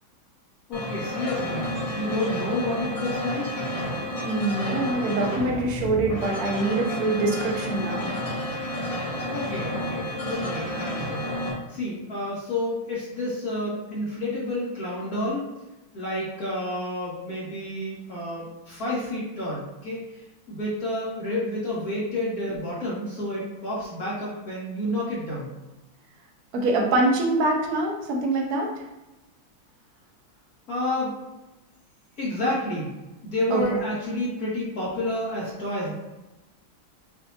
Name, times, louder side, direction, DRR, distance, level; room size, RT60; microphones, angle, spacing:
sound 1, 0.7-11.5, left 1 dB, 65° left, 2.1 m, -31 dB
voice 1, 0.7-1.6 1.9-3.5 9.3-11.2 11.7-15.4 15.9-20.0 20.5-25.5 30.7-31.1 32.2-32.9 33.2-35.9, left 1 dB, 50° left, -7 dB, 1.9 m, -29 dB
voice 2, 4.2-8.2 26.5-28.9 33.5-33.8, right 2 dB, 60° right, 0 dB, 1.2 m, -24 dB
6.6 x 2.7 x 2.8 m, 1.0 s
omnidirectional pair, 2.2 m